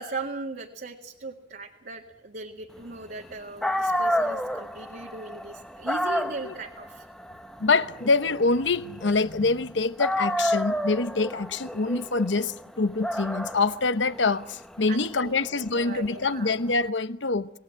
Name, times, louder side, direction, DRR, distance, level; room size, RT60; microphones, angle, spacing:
voice 1, 0.0-7.0 14.9-16.5, right 3 dB, 55° right, 1.9 m, -38 dB
Dog, 3.3-3.4 3.6-9.6 10.0-16.8, equal, 5° left, 0.9 m, -31 dB
voice 2, 7.6-17.5, left 3 dB, 80° left, 1.0 m, -25 dB
27.5 x 19.0 x 7.7 m
head